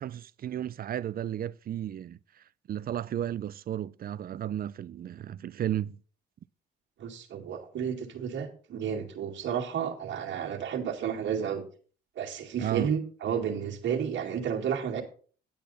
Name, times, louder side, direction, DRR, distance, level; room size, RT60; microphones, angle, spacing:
voice 1, 0.0-2.2 2.7-6.0 12.6-12.9, right 11 dB, 50° right, 0.5 m, -33 dB
voice 2, 7.0-11.6 12.2-15.0, right 8 dB, 70° right, 2.2 m, -32 dB
10.5 x 8.4 x 4.1 m
cardioid pair, 90°, 20 cm